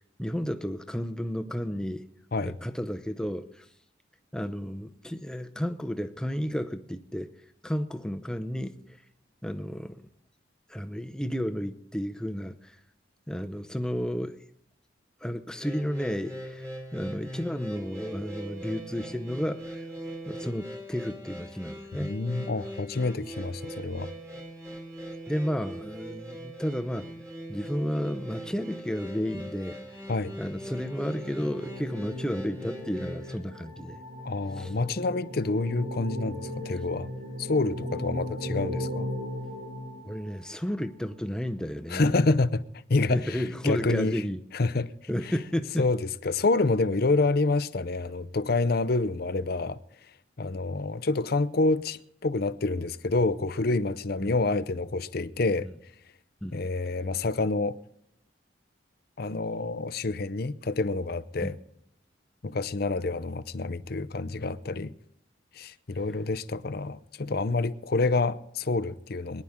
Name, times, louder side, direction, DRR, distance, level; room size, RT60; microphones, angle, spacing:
voice 1, 0.0-2.1 2.4-3.7 4.3-7.3 7.6-9.0 9.4-10.0 10.7-12.8 13.3-14.4 15.2-16.7 16.9-19.8 20.3-22.1 25.3-27.1 27.5-29.8 30.4-34.0 34.6-34.7 36.7-36.8 40.0-42.1 43.1-44.4 45.1-45.9 54.2-54.3 56.4-56.7 61.4-61.6, equal, 5° left, 0.7 m, -32 dB
sound 1, 15.6-33.4, equal, 15° right, 2.4 m, -41 dB
voice 2, 22.0-24.1 30.1-30.3 34.2-37.1 37.4-39.1 41.9-42.6 42.9-44.2 44.5-44.9 45.8-49.8 50.4-55.7 56.5-57.8 59.2-61.6 62.4-64.9 65.5-69.4, left 3 dB, 50° left, 0.6 m, -27 dB
sound 2, 29.9-40.7, equal, 40° right, 6.2 m, -37 dB
22.5 x 11.0 x 3.6 m
head